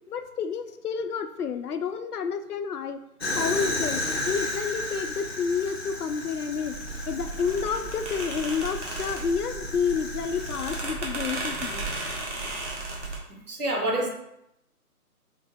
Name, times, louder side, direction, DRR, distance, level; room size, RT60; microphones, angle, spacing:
voice 1, 0.1-3.0 3.4-6.8 7.1-11.8, left 6 dB, 90° left, 9 dB, 0.6 m, -29 dB
Fire, 3.2-10.8, left 2 dB, 45° left, 0.6 m, -34 dB
sound 1, 6.7-13.2, right 2 dB, 50° right, 1.3 m, -35 dB
voice 2, 13.3-14.1, right 1 dB, 80° right, 0 dB, 1.4 m, -27 dB
4.5 x 3.2 x 2.9 m, 0.81 s
hypercardioid pair, 175°, 45 cm